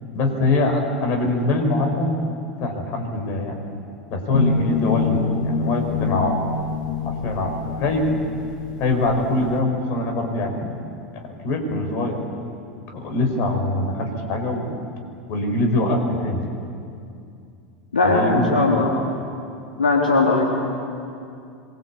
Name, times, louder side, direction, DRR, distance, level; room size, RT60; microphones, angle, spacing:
voice 1, 0.1-2.1 2.6-3.6 4.1-6.4 7.1-8.1 8.8-10.8 11.1-12.2 12.9-14.7 15.3-16.5 18.0-18.7, left 2 dB, 50° left, 4 dB, 5.3 m, -23 dB
sound 1, 4.3-9.6, left 4 dB, 70° left, 2.5 m, -26 dB
voice 2, 17.9-18.9 19.8-20.4, left 3 dB, 90° left, -1 dB, 3.7 m, -18 dB
26.5 x 22.5 x 8.6 m, 2.5 s
hypercardioid pair, 85°, 5 cm